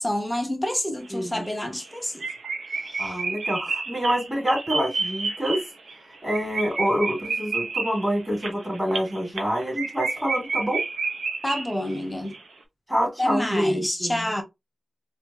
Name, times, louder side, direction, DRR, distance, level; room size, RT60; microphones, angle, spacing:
voice 1, 0.0-2.2 2.8-3.2 11.4-12.3 13.2-14.4, left 1 dB, 10° left, 0.9 m, -28 dB
voice 2, 1.1-1.5 3.0-5.6 6.2-10.8 12.9-14.3, equal, 10° right, 2.6 m, -26 dB
sound 1, 1.1-1.2 1.4-1.5 1.8-1.9 2.2-12.0 12.3-12.4, right 4 dB, 90° right, 0.9 m, -30 dB
4.4 x 2.7 x 2.8 m
wide cardioid pair, 90°, 0 cm